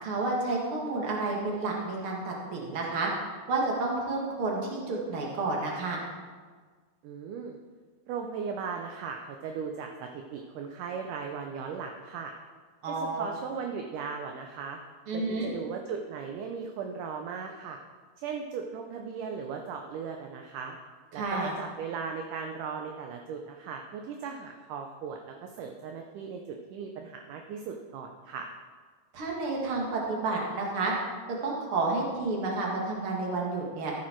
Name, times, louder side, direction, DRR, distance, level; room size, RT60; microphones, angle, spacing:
voice 1, 0.0-3.1 3.5-6.0 12.8-13.2 15.1-15.5 21.1-21.5 29.1-30.9 31.4-33.9, right 3 dB, 45° right, -2 dB, 2.4 m, -30 dB
voice 2, 7.0-7.6 8.1-12.3 12.9-14.8 15.1-17.8 18.2-20.8 21.1-28.5, right 6 dB, 75° right, 3 dB, 2.1 m, -37 dB
14.0 x 7.5 x 4.5 m, 1.5 s
omnidirectional pair, 4.1 m